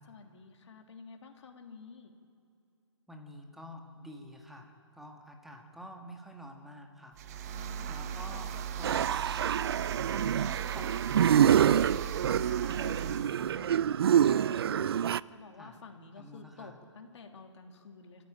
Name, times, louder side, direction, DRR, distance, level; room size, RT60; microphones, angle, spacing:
voice 1, 0.0-2.1 7.5-9.0 14.2-18.2, left 4 dB, 65° left, 4 dB, 3.0 m, -51 dB
voice 2, 3.1-7.2 7.9-8.5 8.8-9.0 10.1-11.9 12.3-13.7 15.6-15.8 16.2-16.8, equal, ahead, 2 dB, 1.7 m, -49 dB
sound 1, 7.1-13.3, right 8 dB, 30° right, 1.1 m, -38 dB
sound 2, 8.8-15.2, right 9 dB, 50° right, 0.4 m, -26 dB
25.0 x 14.5 x 8.8 m, 2.6 s
hypercardioid pair, 150°, 16 cm